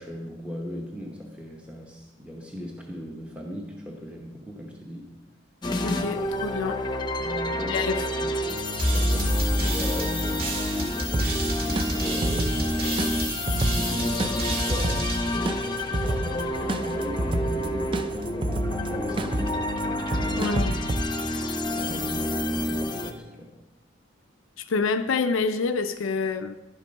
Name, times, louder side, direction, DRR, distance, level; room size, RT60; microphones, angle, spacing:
voice 1, 0.0-5.1 7.2-8.5 8.9-12.6 13.7-19.8 20.1-20.5 21.7-23.5, left 1 dB, 5° right, 0.9 m, -38 dB
sound 1, 5.6-23.1, left 1 dB, 20° left, 0.7 m, -29 dB
voice 2, 5.8-6.8 7.6-8.0 20.4-20.7 24.6-26.5, left 4 dB, 80° left, 0.4 m, -27 dB
sound 2, 8.8-16.3, right 1 dB, 45° right, 1.9 m, -29 dB
sound 3, 11.1-21.0, right 1 dB, 25° right, 0.4 m, -30 dB
11.5 x 7.3 x 5.3 m
head